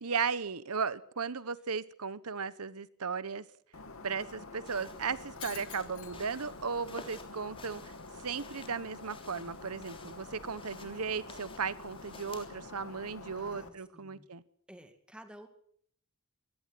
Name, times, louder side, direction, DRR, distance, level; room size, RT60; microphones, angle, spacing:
voice 1, 0.0-3.4 4.0-7.8 8.2-14.4, right 5 dB, 85° right, 1.1 m, -36 dB
Shatter, 3.7-13.7, left 3 dB, 70° left, 2.6 m, -47 dB
sound 1, 4.6-12.5, left 3 dB, 25° left, 3.4 m, -53 dB
voice 2, 13.4-14.3 14.7-15.5, equal, 5° right, 2.2 m, -53 dB
23.5 x 17.0 x 7.8 m
head